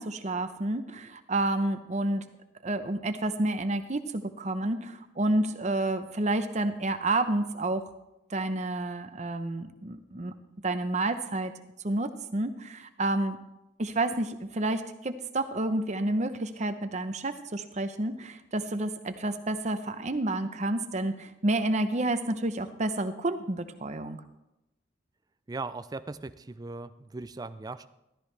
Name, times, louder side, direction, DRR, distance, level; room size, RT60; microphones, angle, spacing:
voice 1, 0.0-2.2 2.6-7.8 8.3-10.3 10.6-11.5 11.8-13.4 13.8-24.2, right 2 dB, 40° right, 9 dB, 0.8 m, -30 dB
voice 2, 25.5-27.9, right 3 dB, 20° right, 12 dB, 0.4 m, -38 dB
13.5 x 13.5 x 3.3 m, 0.90 s
head